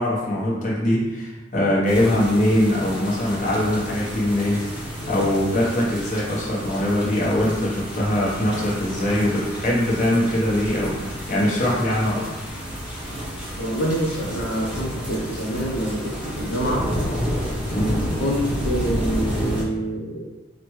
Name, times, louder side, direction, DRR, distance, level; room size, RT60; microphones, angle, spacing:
voice 1, 0.0-4.6 5.1-12.3 17.7-18.0, left 1 dB, 40° left, -5 dB, 0.9 m, -22 dB
sound 1, 1.9-19.6, equal, 5° right, 0.7 m, -30 dB
voice 2, 13.6-16.0 16.4-16.8 18.2-20.2, right 1 dB, 75° left, -3 dB, 0.6 m, -26 dB
5.0 x 2.1 x 3.1 m, 1.1 s
head